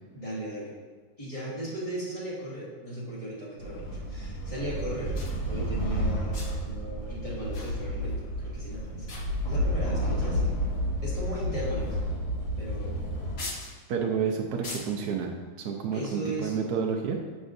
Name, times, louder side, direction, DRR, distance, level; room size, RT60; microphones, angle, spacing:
voice 1, 0.1-0.7 1.2-5.1 5.5-9.1 9.4-10.5 11.0-12.0 12.6-13.0 15.9-16.6, right 1 dB, 20° left, -8 dB, 1.7 m, -37 dB
sound 1, 3.6-13.3, equal, 85° left, 2.5 m, -31 dB
sound 2, 5.1-5.4 6.3-6.7 7.5-8.2 8.5-8.7 9.1-9.7 10.5-10.6 11.8-12.1 12.4-12.5 13.4-13.8 14.6-15.1 15.9-16.1, left 2 dB, 45° left, 0.9 m, -41 dB
voice 2, 13.9-15.3 15.6-17.2, right 6 dB, 70° right, 1 dB, 0.9 m, -29 dB
7.2 x 6.1 x 2.6 m, 1.4 s
omnidirectional pair, 2.1 m